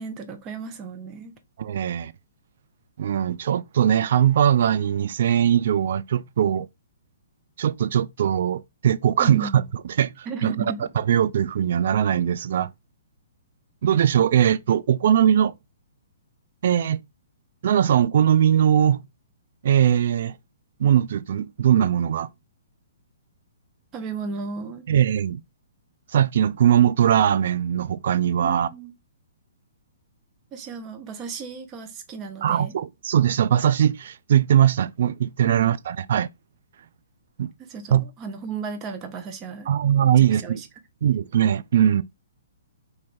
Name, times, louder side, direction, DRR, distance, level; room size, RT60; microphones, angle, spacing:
voice 1, 0.0-1.4 9.2-9.7 10.3-10.9 23.9-24.8 28.4-28.9 30.5-32.8 37.6-39.7 40.2-40.7, right 5 dB, 25° right, 0.7 m, -35 dB
voice 2, 1.6-2.1 3.0-6.7 7.6-10.5 11.0-12.7 13.8-15.5 16.6-17.0 17.6-19.0 19.6-20.3 20.8-22.3 24.9-25.4 26.1-28.7 32.4-36.3 37.4-37.5 37.9-38.0 39.7-40.6 41.0-42.0, right 9 dB, 55° right, 0.3 m, -20 dB
3.2 x 2.6 x 4.1 m
figure-of-eight pair, 125°, 0 cm